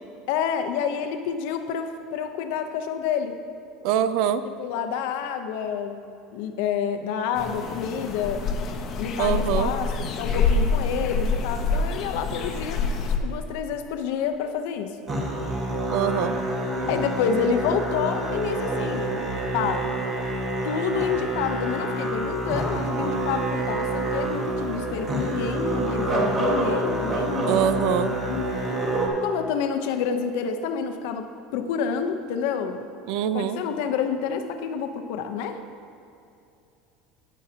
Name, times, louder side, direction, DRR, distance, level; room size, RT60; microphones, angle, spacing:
voice 1, 0.3-3.3 4.4-6.0 6.3-8.4 9.0-12.8 13.2-15.0 16.9-19.2 19.5-19.9 20.6-27.7 28.3-28.5 29.2-32.9 33.3-35.6, left 7 dB, 75° left, 7 dB, 0.7 m, -28 dB
voice 2, 3.8-4.4 9.2-9.7 15.9-16.4 27.5-28.2 33.1-33.6, right 9 dB, 65° right, 12 dB, 0.4 m, -24 dB
sound 1, 7.3-13.2, left 4 dB, 40° left, 0.8 m, -26 dB
Musical instrument, 15.1-29.1, right 1 dB, 30° right, 1.5 m, -27 dB
17.0 x 6.4 x 2.8 m, 2.6 s
cardioid pair, 150°, 0 cm